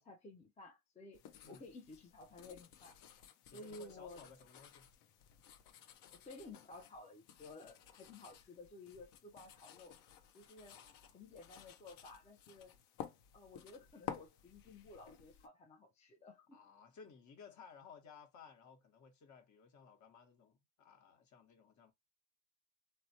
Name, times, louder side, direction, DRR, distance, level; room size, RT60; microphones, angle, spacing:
voice 1, 0.0-3.0 3.5-4.2 6.1-10.0 10.3-10.9 11.1-12.7 13.3-16.6, left 2 dB, 15° left, 0.4 m, -54 dB
sound 1, 1.1-15.5, left 9 dB, 55° left, 0.7 m, -54 dB
voice 2, 3.5-4.9 10.7-11.2 16.5-21.9, left 5 dB, 40° left, 1.1 m, -59 dB
3.0 x 2.1 x 2.7 m
supercardioid pair, 100°, 47 cm